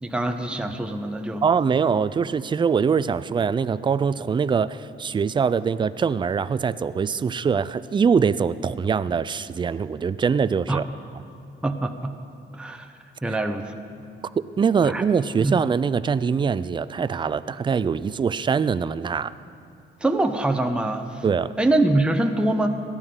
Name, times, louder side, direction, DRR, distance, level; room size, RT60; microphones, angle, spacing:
voice 1, 0.0-1.4 10.7-10.8 11.6-12.1 12.5-12.9 13.2-13.7 14.8-15.0 15.4-15.6 20.0-21.2 21.6-22.7, right 2 dB, 5° right, 5 dB, 0.8 m, -24 dB
voice 2, 1.4-10.9 14.4-19.3 21.2-21.6, right 6 dB, 25° right, 16 dB, 0.4 m, -23 dB
18.0 x 12.5 x 3.8 m, 2.5 s
cardioid pair, 90°, 20 cm